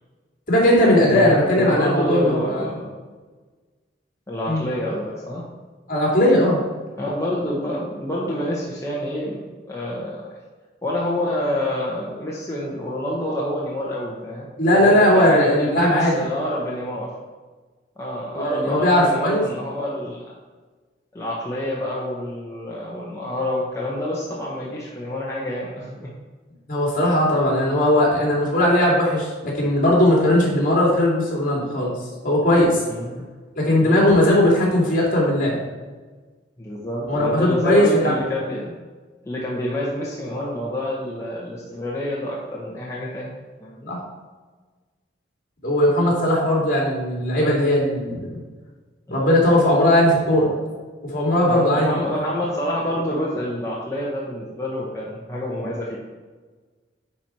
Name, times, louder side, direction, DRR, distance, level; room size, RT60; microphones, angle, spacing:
voice 1, 0.5-2.6 4.5-4.6 5.9-6.6 14.6-16.1 18.3-19.4 26.7-31.9 32.2-32.8 33.6-35.6 37.1-38.1 43.9-44.0 45.6-48.4 49.1-50.5 51.1-52.0, left 1 dB, 50° left, -3 dB, 2.8 m, -18 dB
voice 2, 1.1-2.9 4.3-5.4 7.0-10.3 10.8-14.5 14.8-17.1 18.0-20.3 21.1-26.1 32.9-33.3 33.8-34.1 36.6-38.8 39.2-43.3 43.6-43.9 49.2-49.3 51.5-56.0, left 1 dB, 15° left, -6 dB, 1.2 m, -27 dB
10.0 x 4.6 x 4.5 m, 1.4 s
head